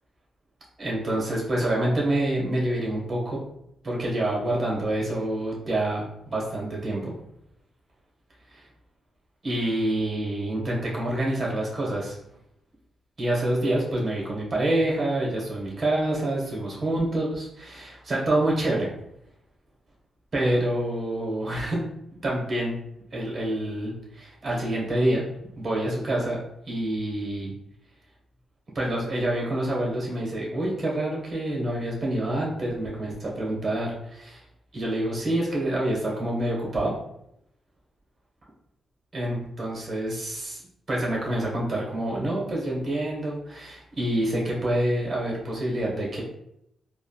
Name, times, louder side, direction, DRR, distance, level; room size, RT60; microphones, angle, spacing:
voice 1, 0.8-3.4 3.8-7.1 9.4-12.2 13.2-18.9 20.3-21.8 22.2-22.8 23.1-25.2 25.6-26.4 26.7-27.5 28.7-34.4 34.7-36.9 39.1-40.6 40.9-46.2, right 1 dB, 40° right, -3 dB, 1.1 m, -27 dB
3.4 x 2.2 x 2.3 m, 0.77 s
cardioid pair, 95°, 0 cm